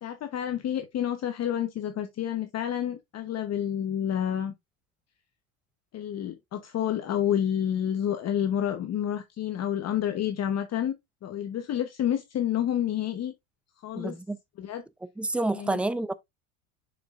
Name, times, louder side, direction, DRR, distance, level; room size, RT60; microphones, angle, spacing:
voice 1, 0.0-4.5 5.9-10.9 11.2-13.3 13.8-14.1 14.6-14.8 15.5-15.8, left 10 dB, 35° left, 1.0 m, -29 dB
voice 2, 14.0-14.4 15.2-16.1, right 2 dB, 5° right, 0.3 m, -28 dB
6.8 x 6.1 x 2.4 m
supercardioid pair, 105°, 43 cm